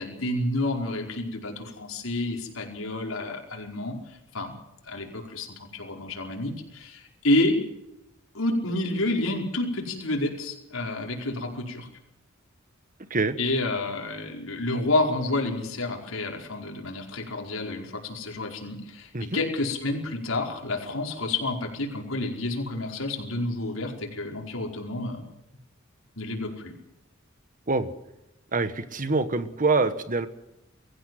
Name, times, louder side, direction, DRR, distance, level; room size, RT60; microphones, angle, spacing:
voice 1, 0.0-4.5 4.8-7.6 8.3-11.9 13.4-25.3 26.2-26.7, left 2 dB, 80° left, 1 dB, 5.0 m, -29 dB
voice 2, 28.5-30.3, right 3 dB, 40° right, 11 dB, 1.4 m, -25 dB
23.5 x 15.0 x 7.8 m, 0.90 s
head